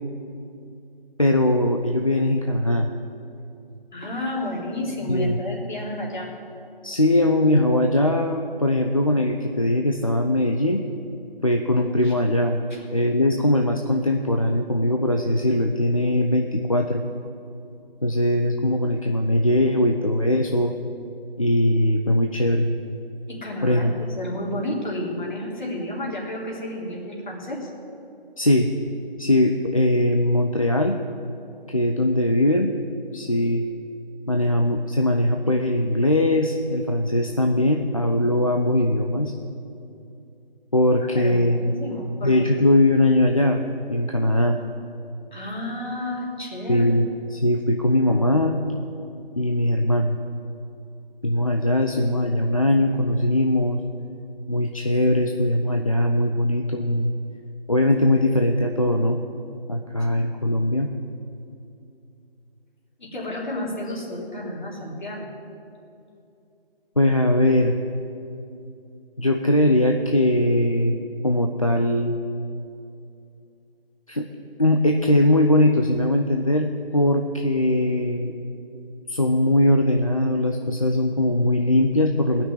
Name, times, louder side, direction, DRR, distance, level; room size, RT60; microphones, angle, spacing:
voice 1, 1.2-2.9 5.1-5.4 6.8-10.8 11.4-12.6 12.9-17.1 18.0-20.8 21.4-22.7 23.6-23.9 28.4-28.7 29.2-31.0 31.7-32.7 33.1-33.6 34.3-39.3 40.7-41.7 42.2-43.6 43.9-44.6 46.7-48.6 49.4-50.2 51.2-53.8 54.5-57.1 57.7-59.2 59.7-60.9 67.0-67.8 69.2-71.0 71.2-72.2 74.1-74.3 74.6-78.3 79.1-82.4, left 1 dB, 35° left, 3 dB, 0.5 m, -20 dB
voice 2, 3.9-6.3 12.0-12.1 12.7-12.8 23.3-27.7 41.1-42.6 45.3-47.0 63.0-65.3, left 1 dB, 50° left, -3 dB, 3.3 m, -31 dB
16.5 x 6.1 x 9.7 m, 2.7 s
figure-of-eight pair, 170°, 30 cm